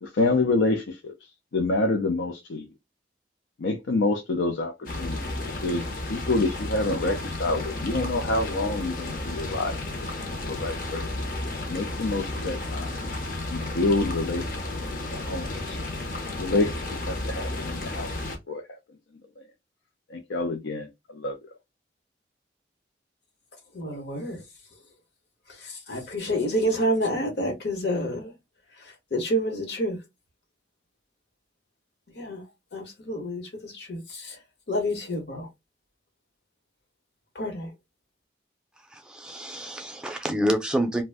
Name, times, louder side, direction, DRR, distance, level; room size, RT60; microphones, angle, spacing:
voice 1, 0.0-2.7 3.6-4.7 5.0-9.8 10.5-11.1 11.7-13.0 13.5-14.5 14.9-15.8 16.3-18.1 18.5-18.6 19.4-19.5 20.1-21.4, left 2 dB, 85° left, 0.5 m, -27 dB
sound 1, 4.9-18.4, left 2 dB, 45° left, 0.6 m, -32 dB
voice 2, 23.7-24.4 25.9-28.3 29.1-30.0 32.2-32.4 32.7-34.3 34.7-35.5 37.4-37.7, equal, 70° left, 1.0 m, -28 dB
voice 3, 38.9-41.0, equal, 5° right, 0.4 m, -27 dB
2.5 x 2.1 x 3.3 m
head